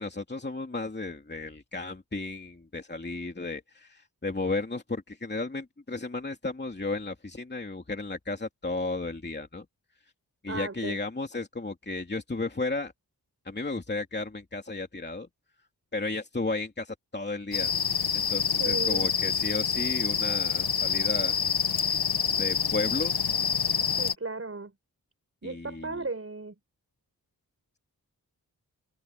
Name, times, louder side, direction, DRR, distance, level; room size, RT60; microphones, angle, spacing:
voice 1, 0.0-9.6 10.4-12.9 13.4-15.3 15.9-17.7 18.1-21.4 22.4-23.2 25.4-26.0, left 3 dB, 25° left, 2.8 m, -34 dB
voice 2, 10.5-11.0 18.6-19.1 24.0-24.7 25.4-26.5, right 3 dB, 35° right, 5.6 m, -35 dB
sound 1, 17.5-24.1, left 7 dB, 75° left, 1.3 m, -27 dB
wide cardioid pair, 85°, 38 cm